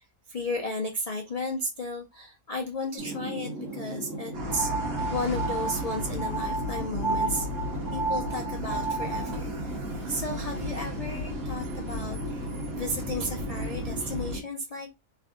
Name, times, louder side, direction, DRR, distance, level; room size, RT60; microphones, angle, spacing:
voice 1, 0.0-12.5 12.8-14.9, left 1 dB, 75° left, 0.3 m, -34 dB
sound 1, 3.0-14.4, right 2 dB, 60° right, 1.3 m, -37 dB
sound 2, 4.3-14.4, left 1 dB, 85° right, 1.5 m, -35 dB
sound 3, 4.5-9.4, right 3 dB, 45° left, 0.7 m, -32 dB
3.4 x 2.5 x 3.6 m
omnidirectional pair, 1.5 m